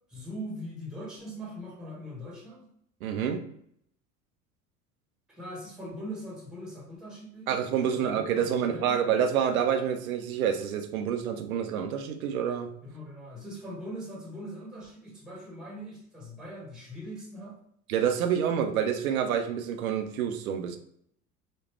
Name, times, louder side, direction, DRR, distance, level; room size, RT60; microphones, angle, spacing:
voice 1, 0.1-2.7 5.3-7.5 7.9-9.0 12.8-17.6, equal, ahead, -2 dB, 1.1 m, -41 dB
voice 2, 3.0-3.5 7.5-12.7 17.9-20.8, right 8 dB, 70° right, 7 dB, 0.6 m, -28 dB
4.2 x 2.2 x 3.0 m, 0.69 s
figure-of-eight pair, 70°, 43 cm